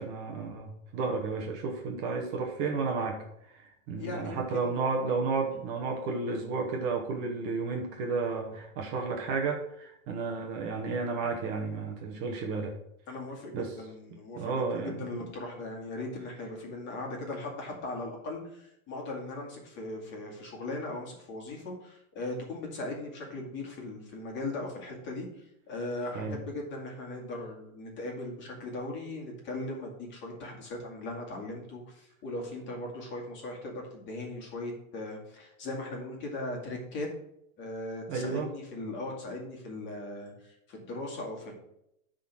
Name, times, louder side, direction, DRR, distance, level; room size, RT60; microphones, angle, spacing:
voice 1, 0.0-12.8 13.5-13.7 14.1-15.2 26.1-26.4 38.1-38.5, right 4 dB, 30° right, 2 dB, 1.0 m, -32 dB
voice 2, 4.0-4.7 13.1-37.1 37.6-41.5, left 2 dB, 25° left, 0 dB, 2.1 m, -39 dB
10.0 x 3.9 x 6.0 m, 0.79 s
supercardioid pair, 160°, 43 cm